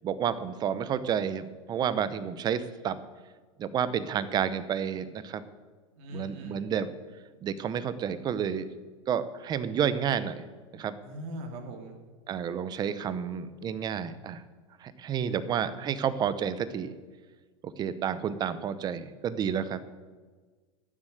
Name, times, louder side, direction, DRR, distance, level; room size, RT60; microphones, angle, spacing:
voice 1, 0.0-3.0 3.6-5.4 6.1-6.9 7.4-8.7 9.1-10.4 10.7-10.9 12.3-14.4 14.8-16.9 17.8-19.8, right 8 dB, 25° right, 14 dB, 0.7 m, -30 dB
voice 2, 6.0-6.7 11.0-11.9 15.1-16.0, equal, 60° right, 3 dB, 2.9 m, -42 dB
13.0 x 7.4 x 9.2 m, 1.4 s
supercardioid pair, 150°, 17 cm